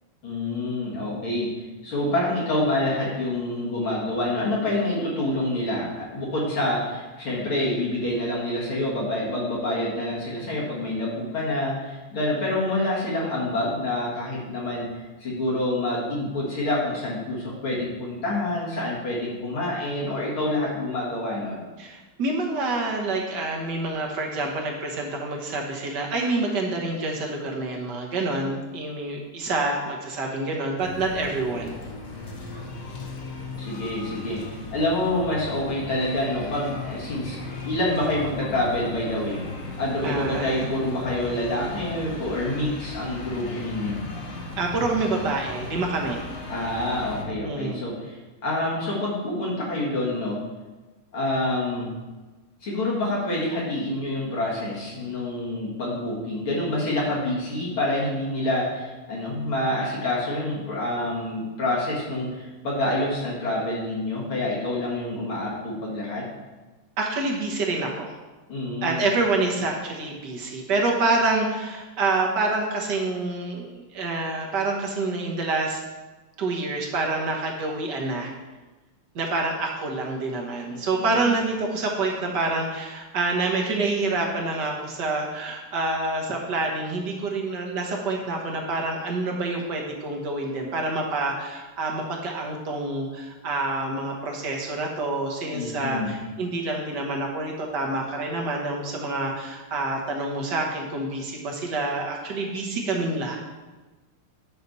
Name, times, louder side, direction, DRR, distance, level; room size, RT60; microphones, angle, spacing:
voice 1, 0.2-1.5 1.8-14.9 15.2-21.6 33.6-37.4 37.6-44.0 46.5-48.2 48.4-50.4 51.1-51.9 52.6-66.3 68.5-69.1 81.0-81.1 95.5-96.1, left 1 dB, 70° left, -6 dB, 2.7 m, -27 dB
voice 2, 21.8-31.8 40.0-40.6 44.6-46.2 47.4-47.8 67.0-68.2 68.8-75.8 76.4-78.3 79.2-103.4, right 2 dB, 55° right, 0 dB, 1.8 m, -27 dB
sound 1, 30.8-47.2, left 3 dB, 50° left, 1.3 m, -37 dB
9.9 x 5.9 x 4.1 m, 1.2 s
omnidirectional pair, 2.4 m